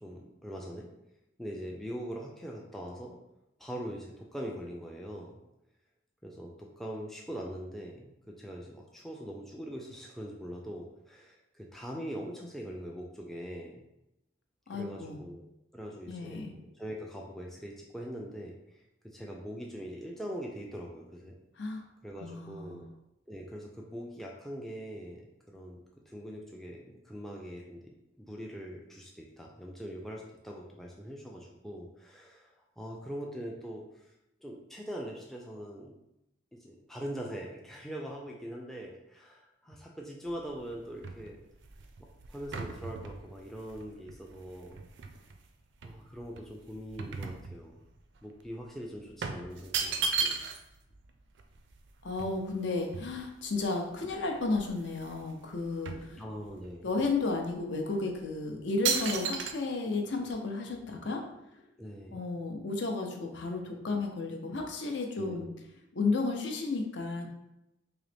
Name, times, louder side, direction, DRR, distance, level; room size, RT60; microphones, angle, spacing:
voice 1, 0.0-0.9 1.4-3.2 3.6-5.4 6.2-13.8 14.7-15.4 15.7-21.3 22.0-22.8 23.3-25.2 25.5-25.8 26.1-32.5 32.8-33.8 34.4-35.9 36.5-41.4 42.3-44.8 45.8-47.7 48.2-50.5 56.2-56.9 61.8-62.2 65.2-65.5, equal, ahead, -2 dB, 0.3 m, -42 dB
voice 2, 14.7-15.2 16.1-16.5 21.6-21.8 22.2-22.9 52.0-56.2 56.8-61.2 62.1-65.5 65.9-67.3, left 3 dB, 65° left, 3 dB, 0.6 m, -33 dB
sound 1, 40.3-45.4 45.8-48.0 48.3-48.5 49.2-50.8 51.1-51.2 51.4-53.5 54.1-54.2 54.4-55.2 55.5-56.7 57.3-57.4 58.1-58.3 58.8-59.5, right 5 dB, 70° right, 0.4 m, -36 dB
3.8 x 2.9 x 3.3 m, 0.88 s
head